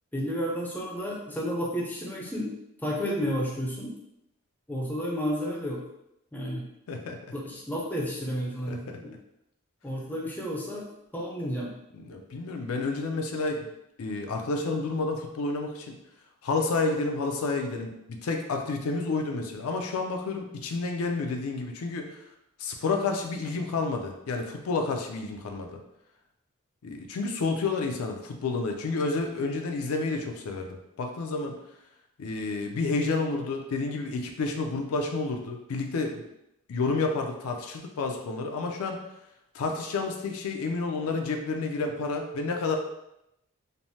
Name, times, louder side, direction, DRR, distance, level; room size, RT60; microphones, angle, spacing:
voice 1, 0.1-2.6 2.8-3.9 4.7-5.8 6.3-6.7 7.3-9.1 9.8-10.9 11.1-11.7, equal, 10° left, -3 dB, 0.4 m, -31 dB
voice 2, 6.9-7.2 8.7-9.0 12.1-13.7 14.0-16.0 16.4-22.2 22.6-25.8 26.8-31.6 32.2-36.2 36.7-39.0 39.5-42.8, left 3 dB, 75° left, 3 dB, 0.4 m, -30 dB
3.1 x 2.0 x 2.7 m, 0.84 s
head